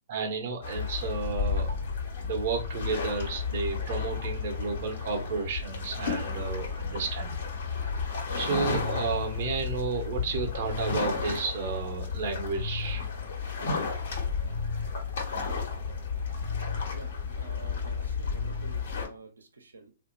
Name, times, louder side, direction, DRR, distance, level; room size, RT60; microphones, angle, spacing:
voice 1, 0.1-1.7 2.2-7.4 8.3-13.0, right 5 dB, 50° right, 0.8 m, -32 dB
sound 1, 0.6-19.1, left 5 dB, 65° left, 1.2 m, -32 dB
voice 2, 16.9-19.9, right 3 dB, 80° right, 0.8 m, -49 dB
2.8 x 2.6 x 2.5 m
figure-of-eight pair, 120°, 0 cm